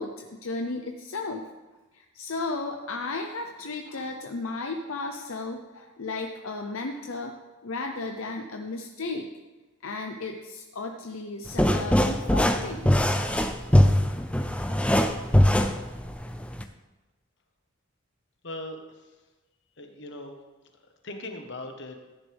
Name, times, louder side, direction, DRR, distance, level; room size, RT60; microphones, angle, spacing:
voice 1, 0.0-1.5 1.9-7.3 7.6-9.3 9.8-12.9, left 3 dB, 75° left, 4 dB, 0.7 m, -34 dB
sound 1, 11.5-16.6, equal, 5° left, 0.5 m, -22 dB
voice 2, 18.4-19.0 19.8-20.3 21.0-22.0, left 1 dB, 55° left, 5 dB, 1.3 m, -39 dB
14.0 x 10.5 x 3.5 m, 1.2 s
head